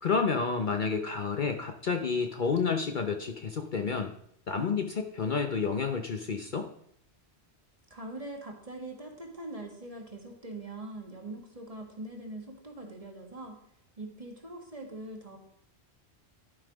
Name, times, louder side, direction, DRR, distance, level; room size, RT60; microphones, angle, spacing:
voice 1, 0.0-4.1 4.5-6.7, left 5 dB, 50° left, 5 dB, 0.8 m, -30 dB
voice 2, 7.9-13.6 14.0-15.4, right 2 dB, 30° right, 1 dB, 1.6 m, -42 dB
11.5 x 5.5 x 5.1 m, 0.68 s
omnidirectional pair, 1.2 m